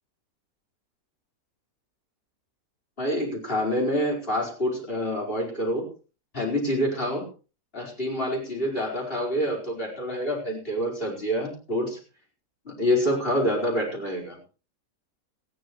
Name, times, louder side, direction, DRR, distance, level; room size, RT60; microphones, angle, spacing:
voice 1, 3.0-5.8 6.3-7.3 7.7-12.0 12.6-14.4, equal, 40° left, -1 dB, 5.0 m, -27 dB
19.5 x 14.5 x 3.1 m, 0.35 s
omnidirectional pair, 1.5 m